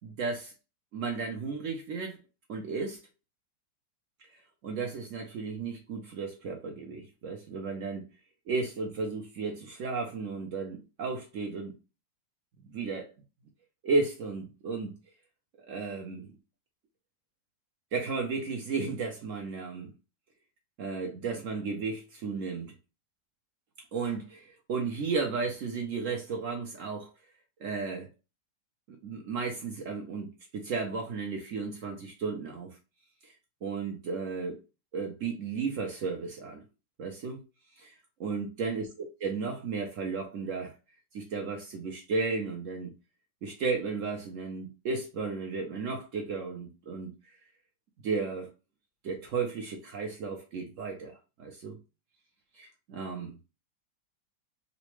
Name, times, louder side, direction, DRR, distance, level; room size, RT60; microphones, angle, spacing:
voice 1, 0.0-0.5 0.9-2.2 2.5-3.0 4.6-8.0 8.5-11.7 12.6-13.1 13.8-14.9 15.7-16.3 17.9-19.9 20.8-22.7 23.9-27.1 27.6-28.1 28.9-32.8 33.2-33.3 33.6-34.6 34.9-36.6 37.0-37.4 37.8-38.9 39.2-40.7 41.1-42.9 43.4-47.1 48.0-48.5 49.0-51.8 52.6-53.3, right 4 dB, 75° right, 0.7 m, -34 dB
3.9 x 2.1 x 3.1 m
omnidirectional pair, 2.0 m